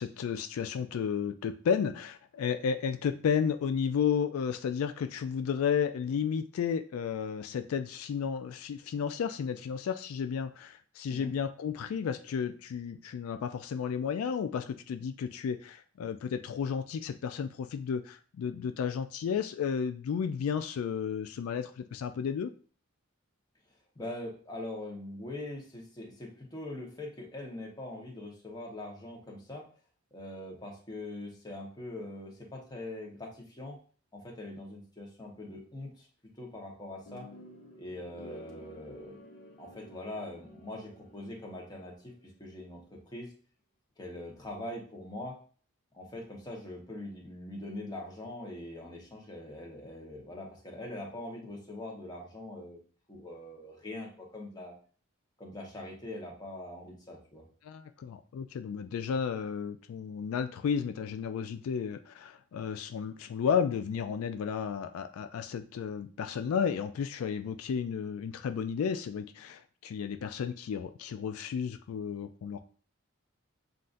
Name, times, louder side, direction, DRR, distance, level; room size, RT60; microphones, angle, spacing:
voice 1, 0.0-22.5 57.6-72.6, left 7 dB, 85° left, 8 dB, 0.3 m, -33 dB
voice 2, 23.9-29.6 30.1-33.8 34.1-36.1 36.4-37.3 37.8-39.2 39.6-43.3 44.0-45.4 45.9-52.8 53.1-54.7 55.4-57.4, left 1 dB, 20° left, -2 dB, 1.1 m, -42 dB
sound 1, 37.1-42.2, equal, 45° left, 1.3 m, -51 dB
7.5 x 2.6 x 2.5 m, 0.41 s
head